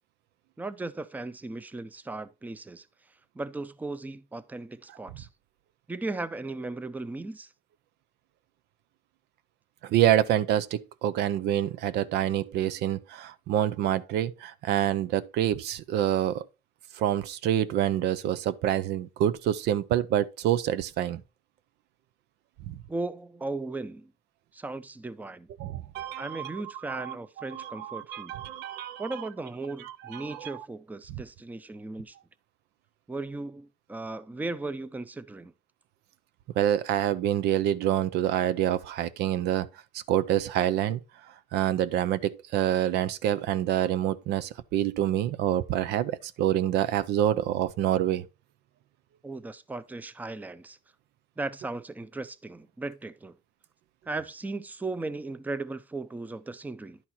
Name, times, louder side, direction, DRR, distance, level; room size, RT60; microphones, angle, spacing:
voice 1, 0.6-2.9 3.3-5.3 5.9-7.5 22.9-24.1 24.5-25.5 26.2-28.3 29.0-32.2 33.1-35.5 49.2-50.8 51.4-53.4 54.1-57.0, right 2 dB, 10° right, 0.5 m, -36 dB
voice 2, 9.8-16.4 17.0-21.2 22.7-22.8 25.6-26.5 26.9-27.1 27.5-29.0 30.1-30.5 36.6-39.7 40.1-41.0 41.5-48.3, right 11 dB, 80° right, 0.6 m, -27 dB
10.5 x 4.3 x 4.2 m
cardioid pair, 110°, 17 cm